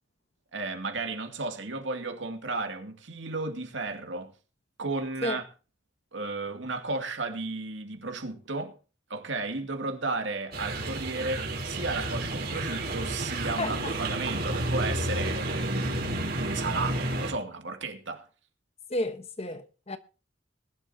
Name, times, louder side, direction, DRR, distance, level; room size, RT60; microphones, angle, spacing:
voice 1, 0.5-4.3 4.8-5.4 6.1-8.7 9.1-18.3, right 3 dB, 70° right, 2.4 m, -34 dB
sound 1, 10.5-17.3, right 1 dB, 50° right, 3.8 m, -31 dB
voice 2, 13.6-13.9 18.9-20.0, left 1 dB, 30° left, 1.1 m, -32 dB
20.5 x 11.5 x 2.8 m
head